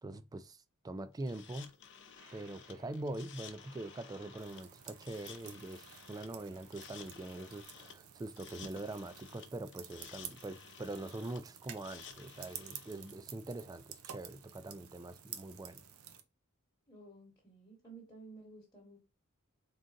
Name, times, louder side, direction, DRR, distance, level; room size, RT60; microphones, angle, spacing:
voice 1, 0.0-1.7 2.3-15.8, right 2 dB, 15° right, 0.3 m, -43 dB
sound 1, 1.2-13.1, left 7 dB, 55° left, 0.6 m, -54 dB
Aircraft, 2.1-7.6, right 3 dB, 70° right, 1.7 m, -64 dB
sound 2, 4.4-16.2, right 9 dB, 85° right, 0.7 m, -52 dB
voice 2, 16.9-19.0, right 3 dB, 20° left, 1.2 m, -54 dB
3.9 x 3.8 x 2.5 m
head